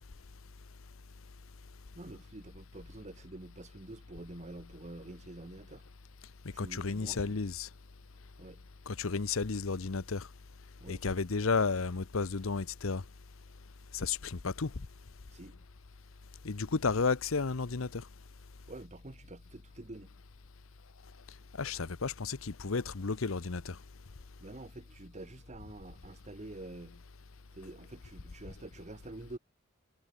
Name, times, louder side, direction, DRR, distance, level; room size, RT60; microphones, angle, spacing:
voice 1, 1.9-5.8 6.5-7.4 8.4-8.6 10.8-11.0 15.3-15.6 18.7-20.1 24.4-27.0 27.5-29.4, right 2 dB, 35° right, 1.2 m, -47 dB
voice 2, 6.6-7.7 8.9-10.3 10.9-13.0 13.9-14.7 16.4-18.0 21.6-23.8, left 4 dB, 75° left, 0.8 m, -32 dB
head